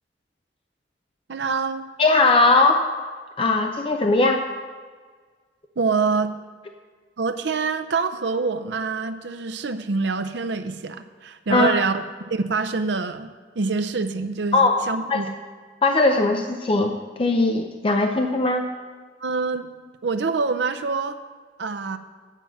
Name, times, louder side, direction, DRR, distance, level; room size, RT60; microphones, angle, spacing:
voice 1, 1.3-1.9 5.8-6.3 7.2-12.0 12.3-13.3 13.6-15.3 19.2-19.7 20.0-21.2 21.6-22.0, right 4 dB, 75° right, 10 dB, 0.6 m, -25 dB
voice 2, 2.0-2.9 3.4-4.5 11.5-11.8 14.5-14.8 15.1-15.2 15.8-18.7, left 3 dB, 30° left, 4 dB, 0.5 m, -19 dB
9.1 x 5.7 x 7.3 m, 1.5 s
head